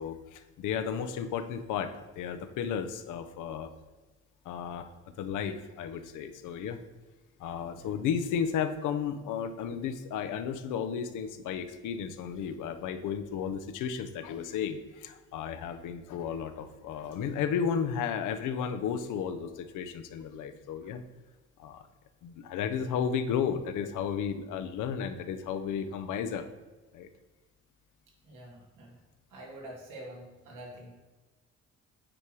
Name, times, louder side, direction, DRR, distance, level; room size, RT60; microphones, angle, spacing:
voice 1, 0.0-3.7 4.4-4.9 5.2-6.8 7.4-21.0 21.6-21.9 22.2-26.4 26.9-27.1, left 7 dB, 85° left, 8 dB, 0.7 m, -33 dB
voice 2, 7.7-8.0 20.8-20.9 28.2-29.0 29.3-30.9, right 1 dB, 90° right, -2 dB, 2.3 m, -47 dB
8.8 x 4.6 x 4.7 m, 1.2 s
cardioid pair, 90°, 30 cm